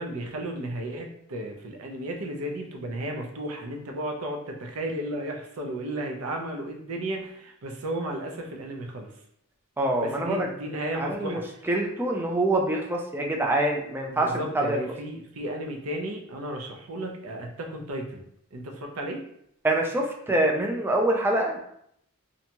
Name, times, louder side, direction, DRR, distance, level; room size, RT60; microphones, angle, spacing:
voice 1, 0.0-9.1 9.9-11.4 14.1-18.2 18.5-19.2, right 1 dB, 80° right, 2 dB, 0.5 m, -34 dB
voice 2, 9.8-10.5 10.7-14.9 19.6-21.6, right 1 dB, 10° right, 0 dB, 0.3 m, -25 dB
2.6 x 2.2 x 2.8 m, 0.72 s
head